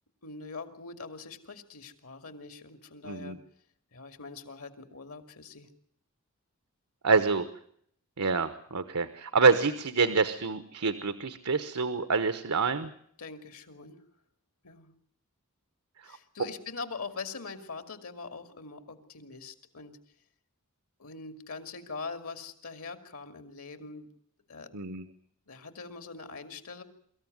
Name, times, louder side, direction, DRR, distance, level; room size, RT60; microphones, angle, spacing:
voice 1, 0.2-3.4 3.9-5.7 13.2-14.0 14.6-14.9 16.0-20.0 21.0-24.1 24.5-24.7 25.5-26.8, left 4 dB, 70° left, 9 dB, 2.5 m, -43 dB
voice 2, 3.0-3.4 7.0-7.5 8.2-12.9 24.7-25.0, right 4 dB, 85° right, 11 dB, 1.1 m, -26 dB
24.0 x 14.5 x 9.4 m, 0.67 s
head